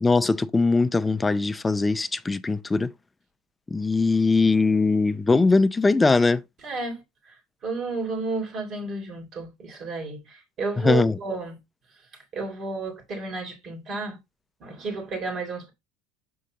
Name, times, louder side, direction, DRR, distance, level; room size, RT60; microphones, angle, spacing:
voice 1, 0.0-2.9 3.7-6.4 10.8-11.2, left 3 dB, 10° left, 0.5 m, -21 dB
voice 2, 6.6-11.6 12.3-14.2 14.6-15.7, right 3 dB, 40° right, 3.8 m, -32 dB
6.6 x 5.5 x 3.8 m
supercardioid pair, 135°, 0 cm